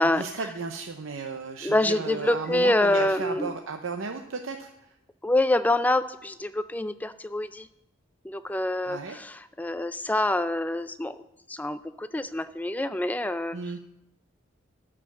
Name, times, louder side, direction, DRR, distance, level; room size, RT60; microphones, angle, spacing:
voice 1, 0.0-4.9 8.8-9.2 13.5-13.8, right 4 dB, 85° right, 4 dB, 0.7 m, -34 dB
voice 2, 1.6-3.6 5.2-7.7 8.2-11.2 11.5-13.6, left 1 dB, 10° left, 12 dB, 0.3 m, -26 dB
13.0 x 4.9 x 7.2 m, 0.86 s
head